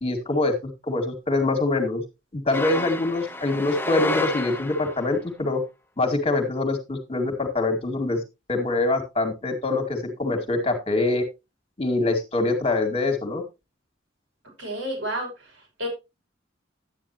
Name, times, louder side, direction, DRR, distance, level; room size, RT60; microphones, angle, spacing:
voice 1, 0.0-2.0 2.3-5.6 6.0-8.2 8.5-11.2 11.8-13.4, left 2 dB, 30° left, 3 dB, 2.2 m, -24 dB
sound 1, 2.5-5.1, left 2 dB, 10° left, 0.7 m, -30 dB
voice 2, 14.6-15.9, equal, 75° right, -1 dB, 6.4 m, -31 dB
11.5 x 9.6 x 3.0 m, 0.25 s
head